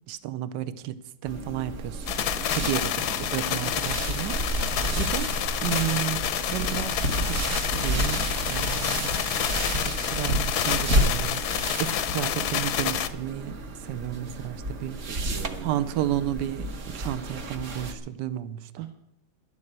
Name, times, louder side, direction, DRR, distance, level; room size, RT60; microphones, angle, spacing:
voice 1, 0.1-0.9 1.2-2.2 2.5-4.4 5.0-5.3 5.6-6.2 6.5-9.2 9.6-11.4 11.8-13.6 13.9-15.0 15.6-18.7, right 12 dB, 70° right, 14 dB, 1.3 m, -32 dB
sound 1, 1.3-17.9, right 1 dB, 45° right, 1.2 m, -31 dB
sound 2, 2.1-13.1, left 10 dB, 65° left, 1.1 m, -28 dB
voice 2, 3.1-3.4 12.4-12.8 15.0-16.3 18.8-18.9, right 7 dB, 90° right, 6 dB, 1.8 m, -44 dB
11.0 x 8.7 x 8.0 m, 0.81 s
omnidirectional pair, 2.2 m